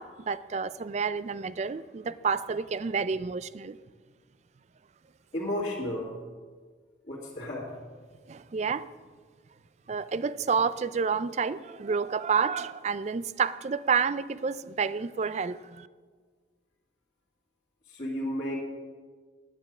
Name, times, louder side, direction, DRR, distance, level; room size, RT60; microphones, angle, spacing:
voice 1, 0.0-3.8 8.3-8.9 9.9-15.9, right 5 dB, 35° right, 15 dB, 0.3 m, -29 dB
voice 2, 5.3-6.1 7.1-7.7 17.9-18.5, left 1 dB, 40° left, -8 dB, 2.1 m, -32 dB
10.0 x 9.6 x 6.1 m, 1.5 s
head